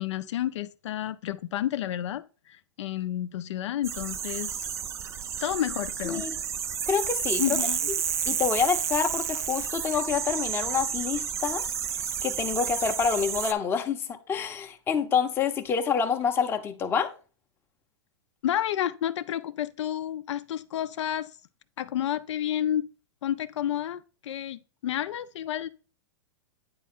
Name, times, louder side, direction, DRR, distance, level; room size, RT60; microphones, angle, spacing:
voice 1, 0.0-2.2 2.5-4.6 5.4-6.3 7.4-7.9 18.4-21.3 21.8-22.9 23.2-25.7, left 11 dB, 75° left, 0.5 m, -30 dB
sound 1, 3.8-13.5, right 8 dB, 20° right, 0.4 m, -31 dB
voice 2, 6.0-6.4 6.9-7.6 8.3-11.6 12.2-17.1, left 6 dB, 15° left, 0.7 m, -27 dB
9.4 x 3.6 x 4.2 m
supercardioid pair, 150°, 15 cm